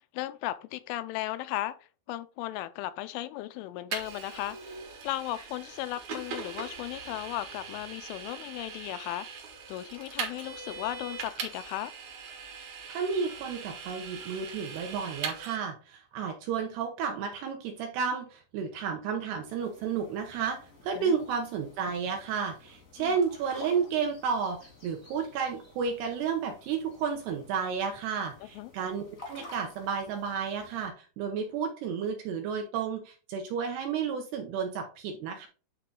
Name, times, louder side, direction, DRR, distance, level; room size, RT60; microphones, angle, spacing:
voice 1, 0.0-1.8 2.1-4.8 5.0-9.3 9.7-11.9 21.0-21.1 23.0-23.1 28.6-28.7, left 15 dB, 85° left, 3.0 m, -36 dB
Vehicle, 3.9-15.6, right 5 dB, 60° right, 1.9 m, -41 dB
voice 2, 12.9-35.5, right 6 dB, 75° right, 2.5 m, -32 dB
sound 1, 19.4-30.9, left 2 dB, 45° left, 1.0 m, -52 dB
10.0 x 3.7 x 3.7 m
omnidirectional pair, 5.5 m